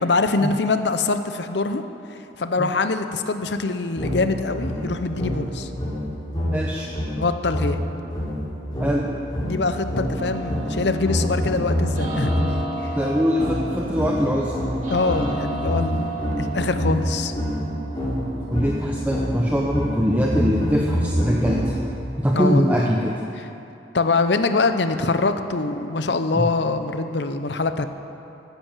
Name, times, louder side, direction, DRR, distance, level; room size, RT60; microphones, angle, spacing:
voice 1, 0.0-1.8 2.4-5.7 7.2-7.8 9.4-12.9 14.9-17.3 22.3-22.9 23.9-27.9, left 3 dB, 65° left, 9 dB, 0.7 m, -24 dB
sound 1, 4.0-12.7 13.4-22.0, equal, 25° left, 3.8 m, -26 dB
voice 2, 6.5-6.9 8.8-9.1 12.9-14.5 18.5-21.8 22.2-23.1 26.3-26.4, equal, 10° right, -2 dB, 0.9 m, -22 dB
sound 2, 10.2-24.1, right 2 dB, 45° right, 2.2 m, -35 dB
14.5 x 10.0 x 7.3 m, 2.8 s
head